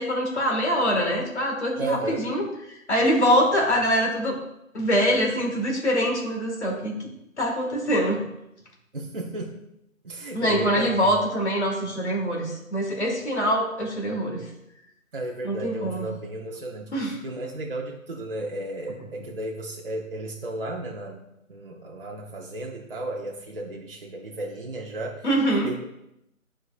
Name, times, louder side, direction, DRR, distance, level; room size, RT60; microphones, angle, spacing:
voice 1, 0.0-2.4 2.7-4.4 4.7-6.9 7.4-8.2 10.3-14.4 15.4-16.0 16.9-17.2 25.2-25.7, equal, 55° left, 1 dB, 1.7 m, -24 dB
voice 2, 1.8-2.2 8.9-9.6 10.0-10.9 15.1-21.2 21.5-25.3 25.6-25.8, right 2 dB, 40° right, -1 dB, 0.6 m, -33 dB
9.1 x 4.7 x 2.4 m, 0.83 s
figure-of-eight pair, 155°, 41 cm